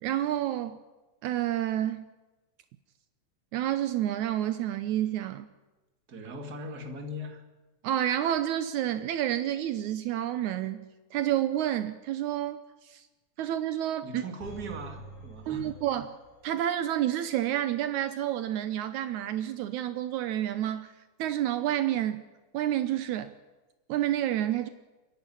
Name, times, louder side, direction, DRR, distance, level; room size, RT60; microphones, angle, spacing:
voice 1, 0.0-0.8 1.2-2.1 3.5-5.5 7.8-10.9 11.1-13.0 13.4-14.2 15.5-16.2 16.4-20.9 21.2-22.2 22.5-23.3 23.9-24.7, right 12 dB, 80° right, 10 dB, 2.2 m, -29 dB
voice 2, 6.1-7.4 14.0-15.7, equal, 30° right, 4 dB, 2.7 m, -39 dB
sound 1, 14.4-16.6 16.9-17.0, equal, 80° left, 8.7 m, -47 dB
29.0 x 11.0 x 9.8 m, 1.1 s
omnidirectional pair, 3.4 m